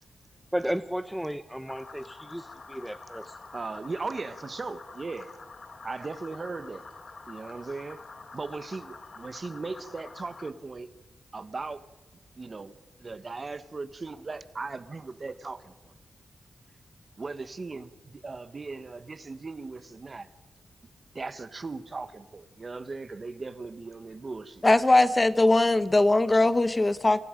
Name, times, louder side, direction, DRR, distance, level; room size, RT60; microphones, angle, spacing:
voice 1, 0.5-3.4, equal, 5° right, 0.8 m, -33 dB
sound 1, 1.7-10.5, left 3 dB, 45° left, 1.7 m, -47 dB
voice 2, 3.5-5.3 5.8-6.8 7.3-8.0 8.3-10.9 11.3-11.8 12.4-15.9 17.2-20.3 21.1-24.7, right 3 dB, 40° right, 1.2 m, -38 dB
voice 3, 24.6-27.2, left 2 dB, 25° left, 1.0 m, -20 dB
28.5 x 26.5 x 5.2 m
cardioid pair, 80°, 0 cm